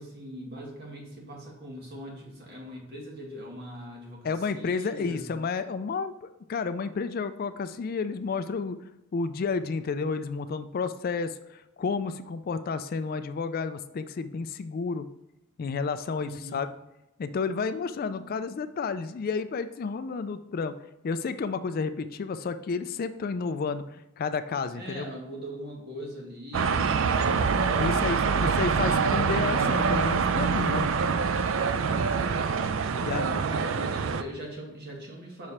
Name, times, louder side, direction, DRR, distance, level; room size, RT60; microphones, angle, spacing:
voice 1, 0.0-5.3 16.2-16.6 24.7-28.9 32.8-35.5, equal, 50° right, -1 dB, 1.9 m, -41 dB
voice 2, 4.2-8.8 9.1-15.1 15.6-16.7 17.2-20.7 21.0-25.1 27.7-30.9 33.0-33.3, left 4 dB, 45° left, 11 dB, 0.3 m, -31 dB
sound 1, 26.5-34.2, right 5 dB, 70° right, 0.4 m, -25 dB
5.9 x 4.9 x 4.2 m, 0.91 s
head